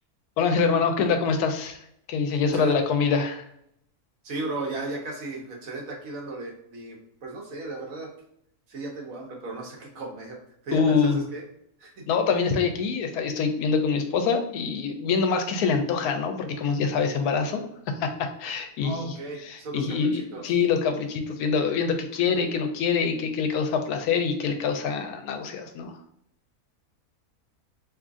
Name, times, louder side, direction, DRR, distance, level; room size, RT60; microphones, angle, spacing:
voice 1, 0.4-1.8 2.1-3.5 10.7-11.2 12.1-17.6 18.0-19.1 19.5-26.0, left 5 dB, 85° left, 6 dB, 1.1 m, -25 dB
voice 2, 4.2-8.1 8.7-10.4 10.6-11.4 11.8-12.0 18.8-20.4, right 2 dB, 65° right, 0 dB, 1.2 m, -35 dB
3.6 x 3.1 x 2.5 m, 0.73 s
omnidirectional pair, 1.6 m